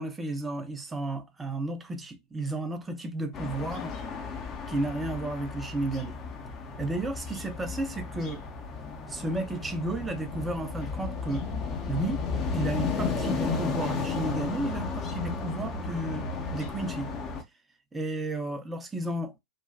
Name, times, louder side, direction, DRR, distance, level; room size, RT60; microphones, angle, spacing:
voice 1, 0.0-3.9 4.7-6.2 6.8-8.4 9.1-11.5 11.9-12.2 12.5-17.1 17.9-19.4, right 2 dB, 10° right, 0.6 m, -33 dB
sound 1, 3.3-17.4, left 4 dB, 30° left, 0.6 m, -33 dB
3.0 x 2.2 x 2.4 m
figure-of-eight pair, 90°, 0 cm